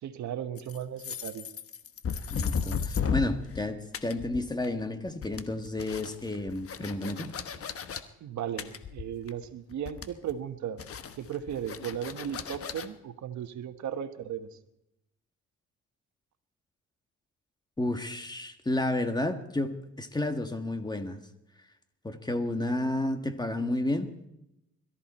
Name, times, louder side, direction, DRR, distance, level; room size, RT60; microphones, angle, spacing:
voice 1, 0.0-1.5 8.2-10.9 11.2-14.6, right 9 dB, 70° right, 9 dB, 1.4 m, -36 dB
sound 1, 0.6-3.7 3.9-4.8 5.1-8.0 8.6-9.5 9.7-10.3 10.8-12.9, left 6 dB, 50° left, 1.2 m, -35 dB
voice 2, 2.3-7.3 17.8-21.2 22.0-24.1, left 1 dB, 15° left, 7 dB, 1.7 m, -31 dB
22.0 x 14.0 x 4.3 m, 0.86 s
cardioid pair, 90°, 30 cm